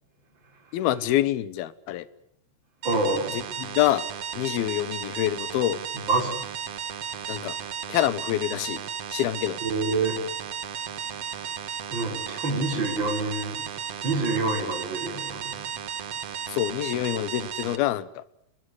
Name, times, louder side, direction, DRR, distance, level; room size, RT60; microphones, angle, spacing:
voice 1, 0.7-2.1 3.3-4.0 4.3-5.8 7.3-7.6 7.9-8.8 9.1-9.6 16.5-18.2, left 13 dB, 75° left, 3.0 m, -26 dB
voice 2, 2.8-3.4 6.1-6.4 7.0-7.5 9.6-10.2 10.7-16.6, right 2 dB, 30° right, 5.5 m, -29 dB
sound 1, 2.8-17.8, right 8 dB, 55° right, 2.0 m, -34 dB
28.0 x 21.0 x 8.1 m
omnidirectional pair, 4.6 m